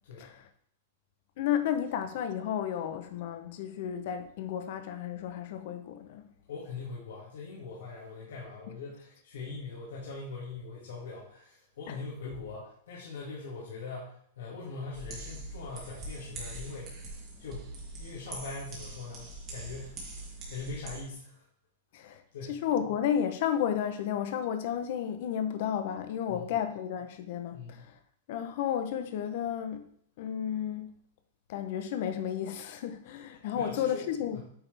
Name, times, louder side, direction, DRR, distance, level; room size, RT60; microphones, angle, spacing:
voice 1, 1.4-6.2 11.9-12.0 21.9-22.2 22.5-27.9 28.3-29.9 30.2-30.9 31.5-34.4, left 9 dB, 55° left, 0.8 m, -32 dB
voice 2, 6.5-16.9 17.4-17.7 18.0-20.0 20.5-21.4 22.3-22.6 26.3-26.6 27.5-27.9 33.5-34.1 34.3-34.4, left 4 dB, 85° left, 2.2 m, -42 dB
sound 1, 14.9-21.0, right 2 dB, 30° right, 2.0 m, -43 dB
8.8 x 3.8 x 3.4 m
supercardioid pair, 150°, 0 cm